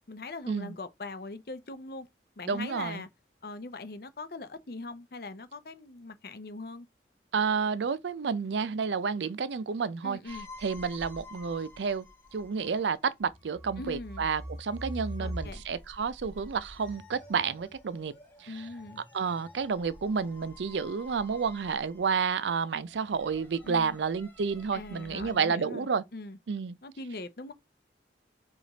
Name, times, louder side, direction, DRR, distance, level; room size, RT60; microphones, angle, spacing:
voice 1, 0.1-2.1 2.4-3.1 3.4-6.9 10.0-10.5 13.8-14.3 15.2-15.6 18.5-19.0 23.6-24.0 24.7-25.9 26.1-26.4 26.8-27.5, left 2 dB, 55° left, 0.6 m, -41 dB
voice 2, 2.5-3.0 7.3-10.2 10.6-12.1 12.3-18.1 18.4-18.7 19.1-26.0 26.5-26.7, right 5 dB, 85° right, 0.5 m, -30 dB
sound 1, 10.3-25.4, equal, 10° left, 1.9 m, -46 dB
4.9 x 2.5 x 3.9 m
head